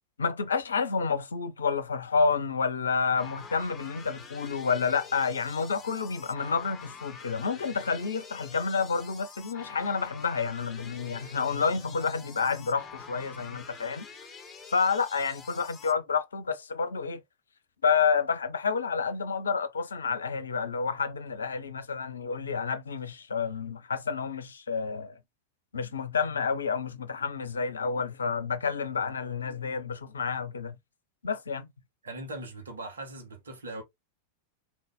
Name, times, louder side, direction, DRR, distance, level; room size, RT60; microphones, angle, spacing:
voice 1, 0.2-14.1 14.7-17.2 17.8-25.2 25.7-30.8 31.2-31.7, left 5 dB, 70° left, 0.7 m, -29 dB
sound 1, 3.2-15.9, left 5 dB, 5° left, 2.6 m, -47 dB
voice 2, 32.0-33.8, right 2 dB, 70° right, 1.6 m, -40 dB
4.5 x 4.0 x 2.4 m
figure-of-eight pair, 90°, 0 cm